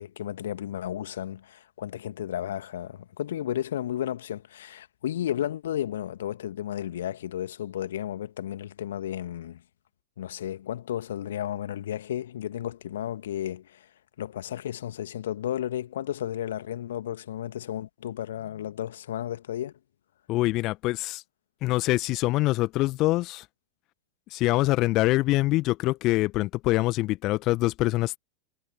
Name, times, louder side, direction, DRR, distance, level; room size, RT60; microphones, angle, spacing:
voice 1, 0.0-9.6 10.2-13.9 14.2-19.7, left 11 dB, 60° left, 2.2 m, -33 dB
voice 2, 20.3-21.2 21.6-23.4 24.3-28.2, left 19 dB, 40° left, 1.4 m, -24 dB
figure-of-eight pair, 90°, 0 cm